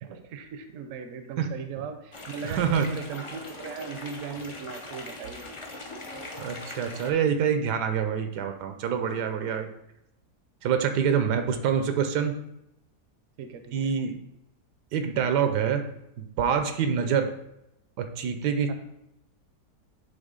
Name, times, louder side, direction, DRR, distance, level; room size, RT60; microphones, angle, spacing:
voice 1, 0.0-5.6 11.2-11.5 13.4-13.9 17.0-17.2 18.7-18.8, right 6 dB, 65° right, 8 dB, 0.9 m, -38 dB
sound 1, 2.1-7.1, left 2 dB, 50° left, 0.3 m, -41 dB
voice 2, 2.4-2.9 6.4-9.7 10.6-12.3 13.7-14.2 14.9-15.9 16.2-17.3 18.0-18.7, right 7 dB, 85° right, 7 dB, 1.3 m, -26 dB
9.5 x 3.4 x 3.7 m, 0.82 s
omnidirectional pair, 1.7 m